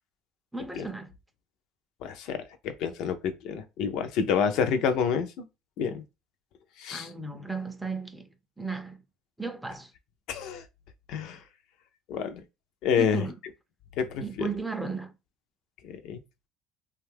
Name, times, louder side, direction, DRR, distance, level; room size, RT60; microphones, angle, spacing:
voice 1, 0.5-1.1 6.9-8.3 8.6-9.0 9.4-9.9 13.0-13.4 14.2-15.1, right 4 dB, 5° right, 0.4 m, -35 dB
voice 2, 2.0-5.4 5.8-6.0 6.8-7.1 10.3-10.6 11.1-11.4 12.1-12.4 12.8-13.2 14.0-14.5 15.8-16.2, left 7 dB, 70° left, 0.5 m, -28 dB
2.5 x 2.3 x 3.4 m
supercardioid pair, 90°, 0 cm